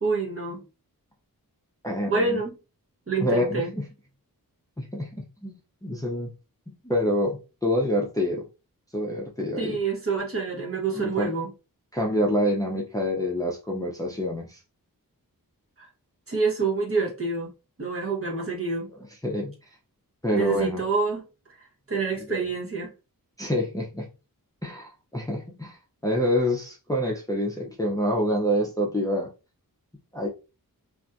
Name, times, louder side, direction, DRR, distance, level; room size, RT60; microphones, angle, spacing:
voice 1, 0.0-0.6 2.1-2.6 3.1-3.7 9.6-11.5 15.8-15.9 16.3-17.5 17.8-18.9 20.3-21.2 21.6-22.9, right 4 dB, 40° right, 0.8 m, -27 dB
voice 2, 1.8-2.4 3.2-3.8 4.8-6.3 6.8-8.4 8.9-9.8 10.9-11.3 11.9-14.6 19.2-19.5 20.2-20.8 22.3-22.4 23.4-24.1 24.6-25.8 26.0-29.3 30.1-30.3, equal, 10° left, 0.5 m, -27 dB
2.5 x 2.5 x 2.2 m
wide cardioid pair, 105°, 36 cm